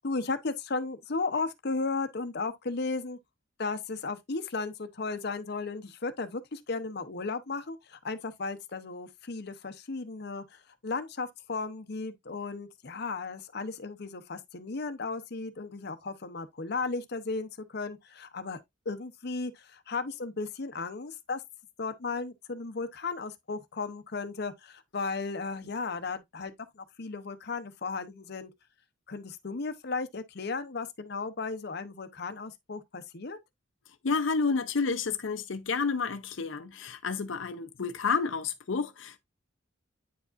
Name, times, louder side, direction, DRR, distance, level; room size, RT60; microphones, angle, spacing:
voice 1, 0.0-3.2 3.6-21.4 21.8-28.5 29.1-33.4, left 4 dB, 60° left, 0.8 m, -35 dB
voice 2, 34.0-39.2, left 5 dB, 85° left, 0.7 m, -30 dB
9.2 x 4.8 x 2.5 m
head